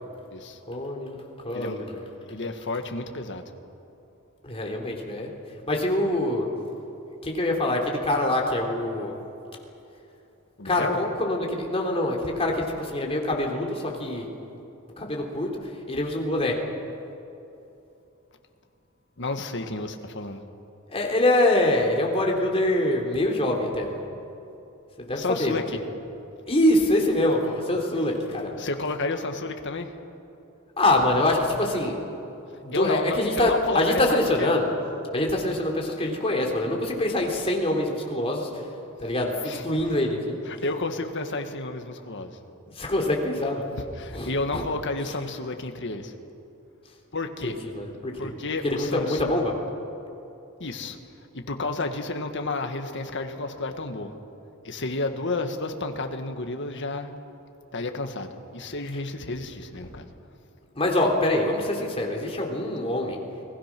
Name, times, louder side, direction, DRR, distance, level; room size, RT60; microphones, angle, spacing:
voice 1, 0.7-1.2 1.4-2.1 4.4-5.3 5.7-6.5 7.2-9.2 10.6-14.3 15.0-15.5 15.9-16.6 20.9-24.0 25.0-25.9 26.4-28.6 30.8-32.0 32.6-34.7 35.1-38.6 39.0-40.4 42.8-43.7 44.1-44.6 47.4-48.3 48.6-49.5 60.8-63.2, left 1 dB, 25° left, 0 dB, 3.4 m, -25 dB
voice 2, 1.5-1.9 2.3-3.4 10.6-11.0 19.2-20.4 25.1-25.8 28.6-29.9 32.7-34.5 39.4-39.6 40.5-42.4 44.0-46.1 47.1-47.6 48.2-49.4 50.6-51.0 51.3-54.1 54.6-57.1 57.7-60.1, left 3 dB, 60° left, 6 dB, 1.8 m, -31 dB
30.0 x 20.5 x 6.1 m, 2.8 s
head